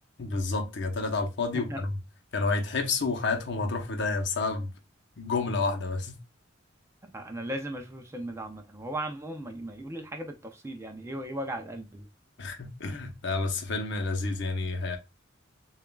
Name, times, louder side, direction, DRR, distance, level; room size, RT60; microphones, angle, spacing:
voice 1, 0.2-1.9 2.3-4.7 5.2-6.1 12.4-15.0, left 3 dB, 60° left, 0.8 m, -29 dB
voice 2, 7.0-12.1, right 1 dB, 15° right, 0.5 m, -37 dB
6.9 x 2.4 x 2.2 m
head